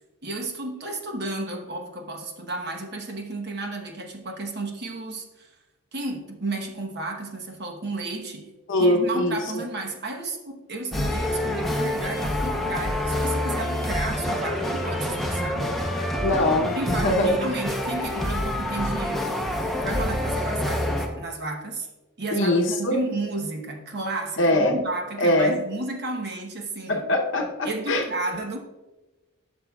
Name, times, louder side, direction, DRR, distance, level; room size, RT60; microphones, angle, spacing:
voice 1, 0.2-5.6 5.9-8.5 8.8-15.7 16.7-19.3 19.7-21.9 22.2-27.1 27.6-28.6, right 2 dB, 50° right, 3 dB, 1.0 m, -32 dB
voice 2, 8.7-9.4 16.2-16.7 17.0-17.3 22.3-23.0 24.4-24.7 25.2-25.6 26.9-28.0, left 1 dB, 60° left, 2 dB, 0.8 m, -22 dB
sound 1, 10.9-21.1, left 1 dB, ahead, 0.7 m, -27 dB
12.0 x 6.2 x 2.3 m, 1.1 s
head